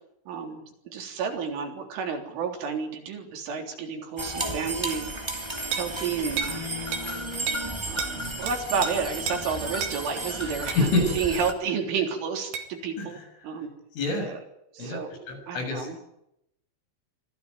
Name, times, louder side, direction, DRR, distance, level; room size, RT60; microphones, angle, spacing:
voice 1, 0.3-0.6 0.9-5.1 5.8-6.6 7.9-10.9 11.1-13.2 13.4-13.7 14.1-14.4 14.7-15.1 15.5-16.0, right 6 dB, 85° right, 3 dB, 6.1 m, -31 dB
sound 1, 4.2-11.5, right 1 dB, 20° right, 0.6 m, -33 dB
sound 2, 5.7-5.9 6.4-6.6 6.9-7.1 7.5-7.7 8.0-8.1 8.5-8.9 9.3-9.4 9.8-10.0 10.7-10.9 12.5-12.7, right 7 dB, 60° right, 4.0 m, -31 dB
voice 2, 14.0-14.3 14.8-15.0 15.3-15.8, left 3 dB, 85° left, 3 dB, 9.6 m, -26 dB
25.0 x 15.5 x 9.4 m, 0.78 s
omnidirectional pair, 5.5 m